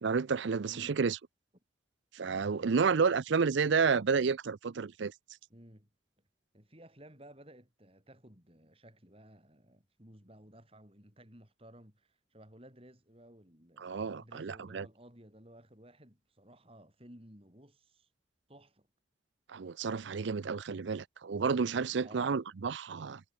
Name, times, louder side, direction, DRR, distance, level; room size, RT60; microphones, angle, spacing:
voice 1, 0.0-1.2 2.1-5.1 13.8-14.9 19.5-23.2, right 5 dB, 70° right, 0.5 m, -30 dB
voice 2, 0.7-1.0 5.5-5.9 6.5-18.1 18.5-18.9 22.0-22.4, right 1 dB, 30° right, 7.2 m, -56 dB
head